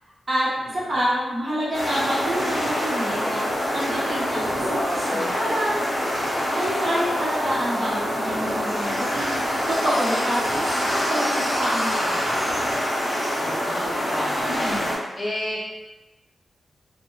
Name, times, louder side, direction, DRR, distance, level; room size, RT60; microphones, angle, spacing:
voice 1, 0.7-3.4 3.7-5.7 6.5-9.4 9.7-12.2 14.5-14.9, equal, 45° right, -8 dB, 0.8 m, -27 dB
sound 1, 1.7-15.0, equal, 50° left, 0.9 m, -25 dB
sound 2, 8.6-14.1, equal, 10° right, 0.6 m, -40 dB
voice 2, 13.3-14.9 15.2-15.6, left 1 dB, 35° left, -8 dB, 0.4 m, -32 dB
2.8 x 2.0 x 2.2 m, 1.1 s
wide cardioid pair, 130°, 0 cm